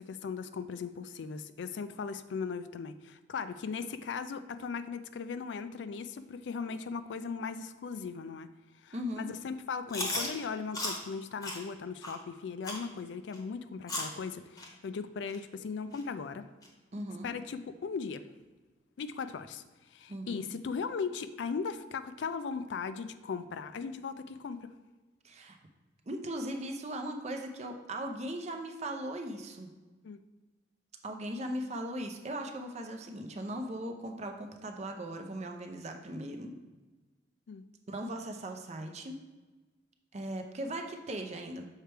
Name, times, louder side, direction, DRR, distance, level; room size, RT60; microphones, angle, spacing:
voice 1, 0.0-8.5 8.8-16.5 17.2-18.2 19.0-19.6 19.9-24.7 30.0-30.2 37.5-37.6, left 5 dB, 80° left, 11 dB, 0.4 m, -38 dB
voice 2, 8.9-9.3 16.9-17.3 20.1-20.4 25.2-25.6 26.1-29.7 31.0-36.5 37.9-39.2 40.1-41.6, right 1 dB, 40° right, 4 dB, 0.6 m, -38 dB
Chewing mastication, 9.9-10.3 10.7-11.0 11.4-11.6 12.0-12.2 12.6-12.8 13.3-13.4 13.9-14.1 14.6-14.7 15.3-15.4 15.9-16.0 16.6-16.7, left 2 dB, 20° left, 0.9 m, -35 dB
6.5 x 4.4 x 3.3 m, 1.2 s
head